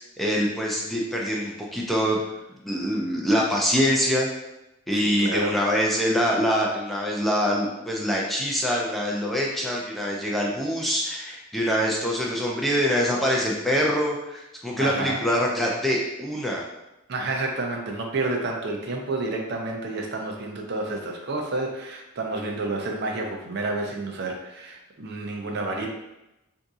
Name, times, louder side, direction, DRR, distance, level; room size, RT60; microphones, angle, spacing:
voice 1, 0.2-2.2 2.6-4.3 4.9-16.6, equal, ahead, -3 dB, 0.3 m, -24 dB
voice 2, 4.9-5.5 14.8-15.2 17.1-25.9, right 2 dB, 55° right, 1 dB, 0.5 m, -30 dB
3.7 x 2.7 x 2.3 m, 0.93 s
head